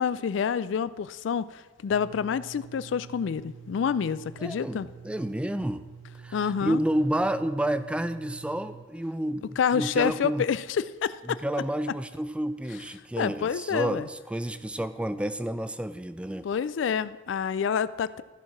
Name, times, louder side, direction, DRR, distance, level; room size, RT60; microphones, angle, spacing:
voice 1, 0.0-4.9 6.3-6.8 9.6-11.4 13.2-14.0 16.4-18.2, left 7 dB, 75° left, 17 dB, 0.3 m, -28 dB
sound 1, 1.9-8.9, right 6 dB, 75° right, 0.4 m, -47 dB
voice 2, 4.4-5.8 6.2-10.5 11.2-16.5, right 1 dB, 5° right, 12 dB, 0.3 m, -30 dB
13.5 x 4.7 x 5.8 m, 1.3 s
head